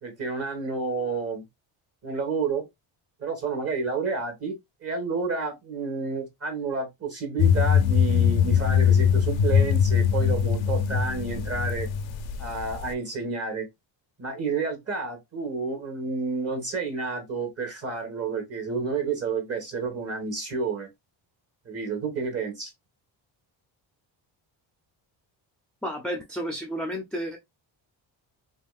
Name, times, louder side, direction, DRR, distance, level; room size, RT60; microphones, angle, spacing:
voice 1, 0.0-1.4 2.0-2.7 3.2-11.9 12.4-13.7 14.2-20.9 21.6-22.7, right 4 dB, 30° right, 1.3 m, -30 dB
sound 1, 7.4-12.9, left 8 dB, 70° left, 0.6 m, -22 dB
voice 2, 25.8-27.4, equal, ahead, 0.5 m, -31 dB
2.9 x 2.7 x 2.3 m
cardioid pair, 100°, 47 cm